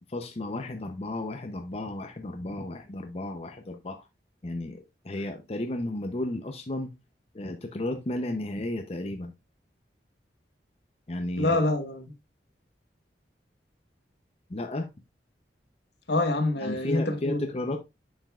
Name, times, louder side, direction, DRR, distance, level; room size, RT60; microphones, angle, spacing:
voice 1, 0.1-4.1 4.4-6.9 7.3-9.3 11.1-11.6 14.5-14.9 16.6-17.8, left 1 dB, 35° left, 0.6 m, -33 dB
voice 2, 11.4-12.1 16.1-17.5, left 2 dB, 70° left, 1.1 m, -26 dB
8.9 x 5.3 x 2.4 m
head